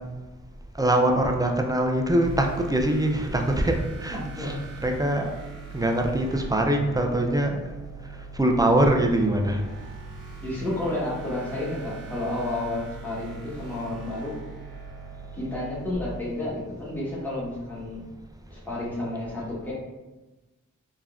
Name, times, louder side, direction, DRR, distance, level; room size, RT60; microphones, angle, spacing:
voice 1, 0.8-5.4 5.7-7.6 8.4-9.6, right 1 dB, 10° right, 2 dB, 0.4 m, -23 dB
sound 1, 2.2-15.9, right 5 dB, 65° right, 1.1 m, -42 dB
voice 2, 4.1-4.6 10.4-14.3 15.3-18.1 18.5-19.7, left 1 dB, 5° left, -7 dB, 1.1 m, -31 dB
3.5 x 2.1 x 2.4 m, 1.1 s
cardioid pair, 45°, 33 cm